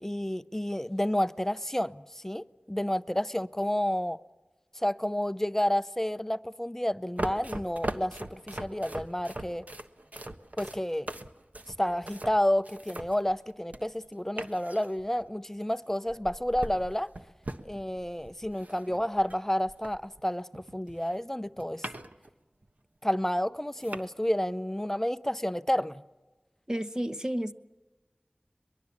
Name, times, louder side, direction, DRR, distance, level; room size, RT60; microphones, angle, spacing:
voice 1, 0.0-4.2 4.8-9.6 10.6-11.1 11.8-17.1 17.6-21.9 23.0-26.0, left 1 dB, 10° left, 0.7 m, -30 dB
sound 1, 7.2-14.0 14.4-15.3 16.1-20.2 20.5-22.3 22.6-22.7 23.4-23.5 23.8-24.0, right 1 dB, 55° right, 1.3 m, -40 dB
voice 2, 26.7-27.5, equal, 20° right, 1.1 m, -31 dB
22.5 x 22.0 x 7.1 m
wide cardioid pair, 50°, 3 cm